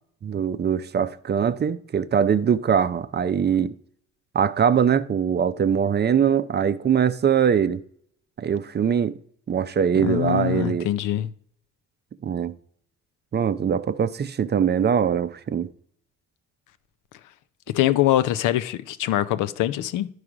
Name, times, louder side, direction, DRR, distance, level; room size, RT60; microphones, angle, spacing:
voice 1, 0.2-3.7 4.3-7.8 8.4-9.1 9.5-10.9 12.2-12.5 13.3-15.7, right 7 dB, 35° right, 0.5 m, -22 dB
voice 2, 10.0-11.3 17.7-20.1, left 13 dB, 90° left, 0.6 m, -23 dB
11.0 x 4.8 x 4.9 m
cardioid pair, 90°, 30 cm